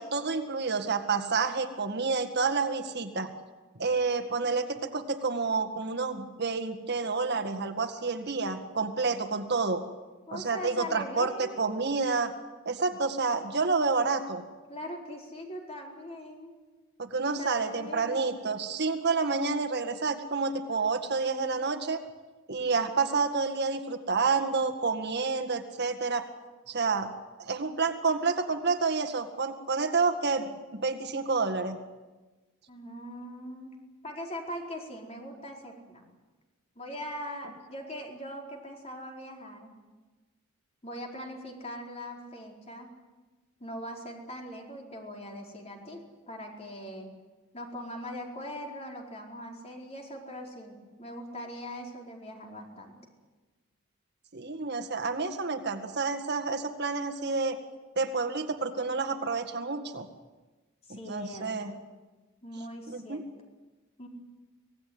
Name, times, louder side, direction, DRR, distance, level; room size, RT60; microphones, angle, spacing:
voice 1, 0.0-3.3 3.8-9.8 10.3-12.3 12.7-14.4 17.0-22.0 22.5-26.2 26.7-27.1 27.4-31.8 54.3-57.6 58.0-60.1 60.9-61.7 62.9-63.2, right 4 dB, 50° right, 7 dB, 1.9 m, -29 dB
voice 2, 8.4-8.8 10.3-11.6 14.7-16.5 17.4-18.2 32.7-33.8 34.0-36.1 36.8-39.8 40.8-42.9 43.6-47.1 47.5-53.0 60.9-61.9 62.4-63.2 64.0-64.1, equal, 30° left, 1 dB, 4.5 m, -41 dB
25.5 x 18.0 x 9.5 m, 1.2 s
head